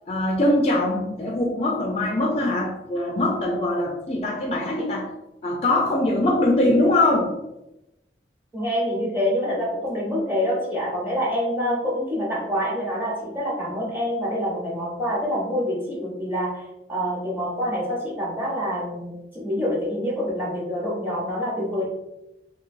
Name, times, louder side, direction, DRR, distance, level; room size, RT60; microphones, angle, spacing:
voice 1, 0.1-5.1 5.4-7.4, left 1 dB, 35° left, 0 dB, 0.3 m, -22 dB
voice 2, 8.5-16.6 16.9-21.8, equal, 10° right, -5 dB, 0.9 m, -26 dB
3.1 x 2.6 x 2.5 m, 0.92 s
head